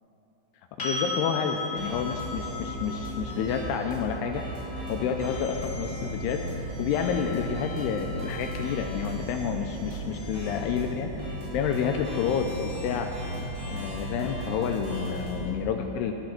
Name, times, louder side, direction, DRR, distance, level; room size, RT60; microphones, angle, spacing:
voice 1, 0.8-4.5 4.9-11.1 11.5-13.1 13.7-16.1, left 7 dB, 80° left, 4 dB, 2.4 m, -29 dB
sound 1, 0.8-8.6 11.4-11.5, left 3 dB, 20° left, 2.2 m, -38 dB
sound 2, 1.8-15.5, equal, 65° right, 5.8 m, -36 dB
13.0 x 11.5 x 5.9 m, 2.9 s
omnidirectional pair, 5.3 m